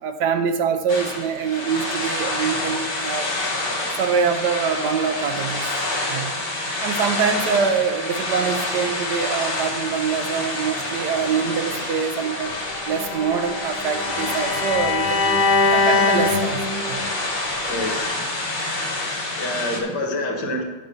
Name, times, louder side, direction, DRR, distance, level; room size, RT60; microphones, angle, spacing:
voice 1, 0.0-3.3 4.0-6.3 6.8-12.5 12.9-15.4 15.7-17.0, right 6 dB, 70° right, 8 dB, 1.1 m, -24 dB
sound 1, 0.9-19.8, left 2 dB, 35° left, 1.5 m, -28 dB
Bowed string instrument, 12.9-17.0, left 3 dB, 90° left, 2.1 m, -22 dB
voice 2, 17.7-18.2 19.4-20.6, left 1 dB, 65° left, 2 dB, 1.7 m, -27 dB
8.0 x 5.3 x 6.6 m, 1.3 s
omnidirectional pair, 2.0 m